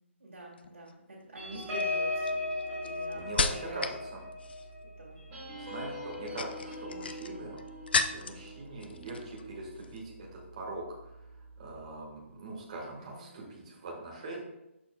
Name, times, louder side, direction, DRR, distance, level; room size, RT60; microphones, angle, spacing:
voice 1, 0.2-4.1 5.0-5.2 13.0-13.5, right 1 dB, 80° right, -8 dB, 2.2 m, -46 dB
sound 1, 0.5-0.9 1.6-4.0 4.3-4.8 6.1-8.5 8.8-9.5 9.7-10.0, left 5 dB, 50° left, 0.4 m, -33 dB
sound 2, 1.3-10.3 10.7-10.9 11.2-11.5, left 2 dB, 10° right, 2.5 m, -38 dB
voice 2, 3.1-4.2 5.6-7.6 8.1-14.4, right 2 dB, 30° right, -2 dB, 1.5 m, -42 dB
13.0 x 4.4 x 2.2 m, 0.90 s
hypercardioid pair, 180°, 7 cm